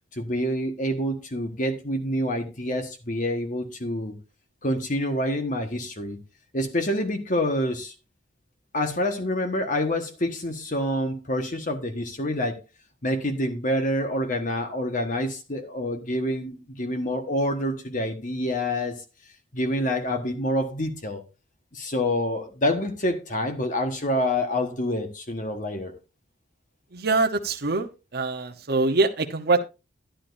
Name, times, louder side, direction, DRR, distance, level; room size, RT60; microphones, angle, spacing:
voice 1, 0.1-4.1 4.6-6.2 6.5-7.9 8.7-12.6 13.0-19.0 19.5-21.2 21.7-25.9, left 1 dB, 40° left, 1.3 m, -27 dB
voice 2, 26.9-27.9 28.1-29.6, right 3 dB, 50° right, 0.8 m, -23 dB
11.5 x 10.0 x 2.6 m
head